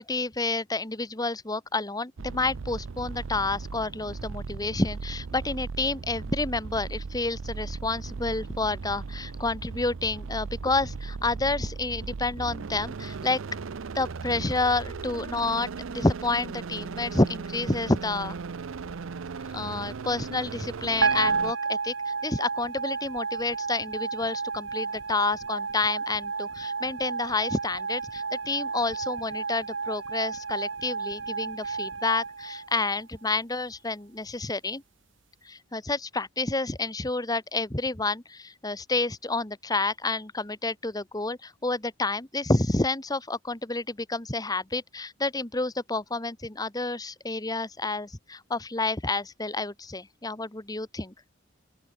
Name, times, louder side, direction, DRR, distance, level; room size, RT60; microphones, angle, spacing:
voice 1, 0.0-13.4 13.9-18.4 19.5-34.8 35.4-51.1, left 3 dB, 20° left, 1.3 m, -29 dB
sound 1, 2.2-21.5, right 4 dB, 85° right, 0.6 m, -37 dB
sound 2, 21.0-33.3, right 5 dB, 65° right, 1.1 m, -32 dB
open air
head